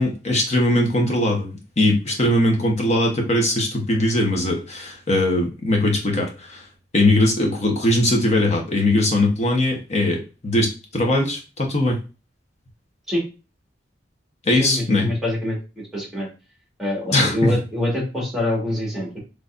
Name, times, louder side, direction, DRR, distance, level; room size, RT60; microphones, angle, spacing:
voice 1, 0.0-6.6 6.9-12.0 14.5-15.1 17.1-17.3, left 1 dB, 40° left, 1 dB, 1.0 m, -20 dB
voice 2, 14.6-15.6 15.9-16.3 16.8-19.2, left 1 dB, ahead, -3 dB, 1.6 m, -24 dB
3.9 x 3.2 x 2.5 m, 0.31 s
head